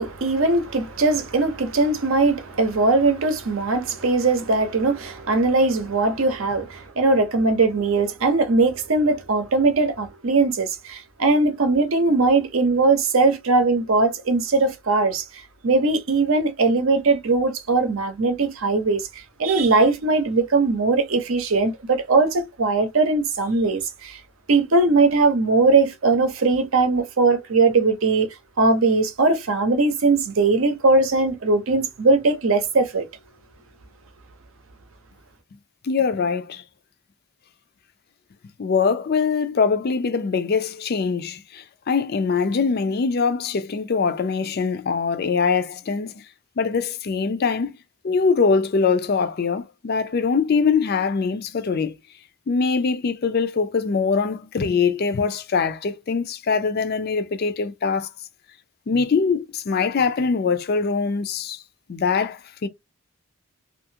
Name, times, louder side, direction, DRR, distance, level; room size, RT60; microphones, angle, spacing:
voice 1, 0.0-15.2 15.6-19.0 19.4-24.2 24.5-28.3 28.6-33.1, right 3 dB, 65° right, 0.7 m, -20 dB
voice 2, 35.8-36.6 38.6-46.2 46.6-47.7 48.0-51.9 52.5-58.1 58.9-61.6 61.9-62.7, left 5 dB, 45° left, 0.4 m, -23 dB
2.7 x 2.4 x 2.7 m
head